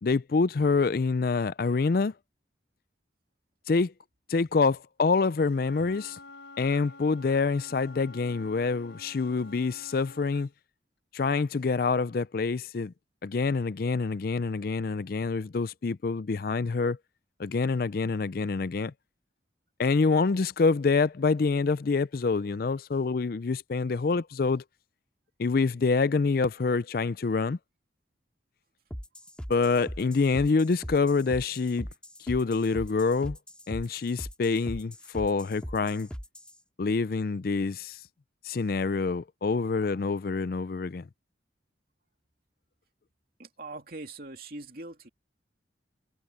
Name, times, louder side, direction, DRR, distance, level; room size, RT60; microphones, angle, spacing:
voice 1, 0.0-2.1 3.7-3.9 4.3-6.2 6.6-10.5 11.1-12.9 13.2-17.0 17.4-18.9 19.8-24.6 25.4-27.6 29.5-31.9 32.2-33.4 33.7-36.1 36.8-38.0 38.4-41.1, left 4 dB, 50° left, 0.4 m, -26 dB
Wind instrument woodwind instrument, 5.4-10.5, left 2 dB, 75° left, 3.8 m, -49 dB
sound 1, 28.9-36.6, equal, 5° left, 2.2 m, -41 dB
voice 2, 43.4-45.1, right 2 dB, 50° right, 2.8 m, -42 dB
head